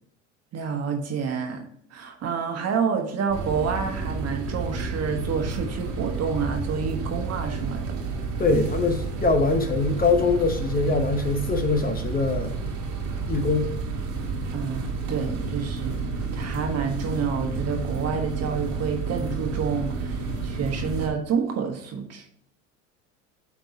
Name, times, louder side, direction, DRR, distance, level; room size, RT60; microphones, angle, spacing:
voice 1, 0.5-1.6 1.9-7.9 8.5-8.6 14.5-16.0 16.3-22.2, right 6 dB, 40° right, 3 dB, 1.5 m, -28 dB
sound 1, 3.3-21.1, right 4 dB, 65° right, 1.9 m, -30 dB
voice 2, 8.4-12.5 13.3-13.7, left 3 dB, 25° left, 6 dB, 1.0 m, -23 dB
9.2 x 3.5 x 4.2 m, 0.69 s
hypercardioid pair, 80°, 37 cm